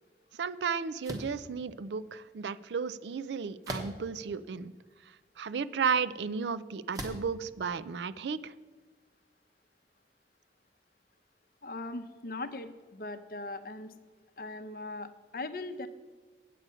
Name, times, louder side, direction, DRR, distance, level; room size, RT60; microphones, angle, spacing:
voice 1, 0.4-4.7 5.4-8.5, right 5 dB, 80° right, 16 dB, 0.4 m, -33 dB
sound 1, 1.0-1.4 3.6-4.2 4.9-5.0 6.9-7.3, right 1 dB, 20° right, 1.0 m, -38 dB
voice 2, 11.6-13.9 14.4-15.9, left 2 dB, 55° left, 9 dB, 0.7 m, -39 dB
8.4 x 8.3 x 5.6 m, 1.4 s
head